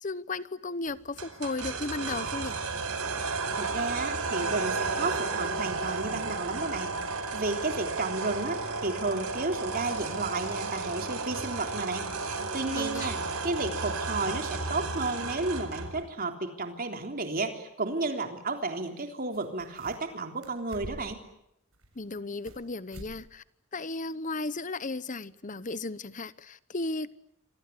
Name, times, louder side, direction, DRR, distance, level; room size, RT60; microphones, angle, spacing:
voice 1, 0.0-2.6 12.7-13.1 22.0-23.4 23.7-27.1, left 3 dB, 35° left, 1.0 m, -35 dB
sound 1, 1.2-16.0, right 3 dB, 90° right, 4.8 m, -33 dB
voice 2, 3.6-21.2, right 3 dB, 40° right, 3.6 m, -33 dB
sound 2, 19.0-19.1 19.3-20.1 20.4-21.2 21.7-22.6 22.9-23.2 23.5-23.6 24.1-24.2, right 1 dB, 65° right, 7.5 m, -46 dB
28.0 x 23.5 x 8.5 m
head